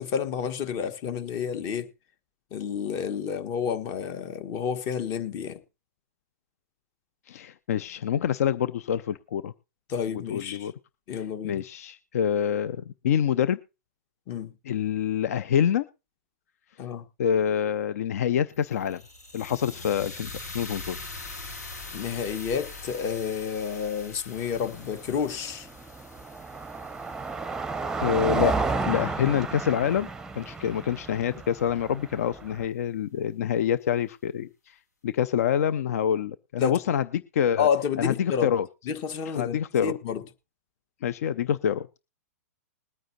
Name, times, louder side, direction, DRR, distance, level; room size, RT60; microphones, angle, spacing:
voice 1, 0.0-1.9 2.5-5.6 9.9-10.7 11.1-11.6 14.3-14.5 16.8-17.0 21.9-25.7 36.6-36.8 37.6-38.5 38.8-40.2, left 7 dB, 40° left, 1.4 m, -30 dB
voice 2, 7.3-9.5 10.1-10.7 11.1-13.6 14.7-15.8 17.2-19.0 19.3-21.0 28.0-30.1 30.3-37.7 38.0-38.7 39.3-40.0 41.0-41.9, left 9 dB, 65° left, 0.5 m, -26 dB
sound 1, 18.5-28.7, left 3 dB, 90° left, 2.5 m, -43 dB
Car passing by, 24.4-32.6, right 4 dB, 5° right, 0.7 m, -32 dB
21.0 x 9.1 x 2.8 m
hypercardioid pair, 115°, 9 cm